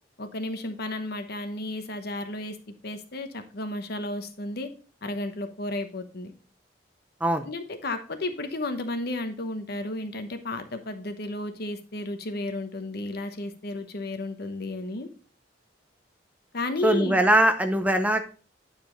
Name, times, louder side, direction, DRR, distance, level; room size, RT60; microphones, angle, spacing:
voice 1, 0.2-4.7 5.0-6.3 7.4-15.1 16.5-17.2, left 2 dB, 55° left, 8 dB, 0.9 m, -33 dB
voice 2, 16.8-18.2, right 1 dB, 10° right, 7 dB, 0.5 m, -21 dB
9.2 x 4.9 x 3.8 m, 0.39 s
head